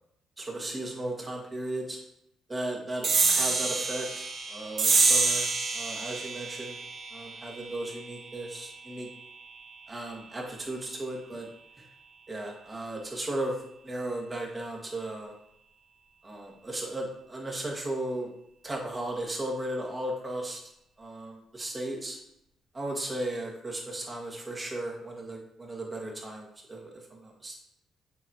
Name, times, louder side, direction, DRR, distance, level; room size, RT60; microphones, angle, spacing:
voice 1, 0.4-2.0 2.5-5.5 5.7-6.8 7.1-9.1 9.9-11.5 11.8-11.9 12.3-15.3 16.2-18.3 18.6-20.6 21.0-22.2 22.7-27.6, right 1 dB, 25° right, -1 dB, 1.7 m, -35 dB
sound 1, 3.0-9.9, right 3 dB, 55° right, 1.2 m, -28 dB
8.3 x 4.1 x 2.9 m, 0.78 s
cardioid pair, 90°, 0 cm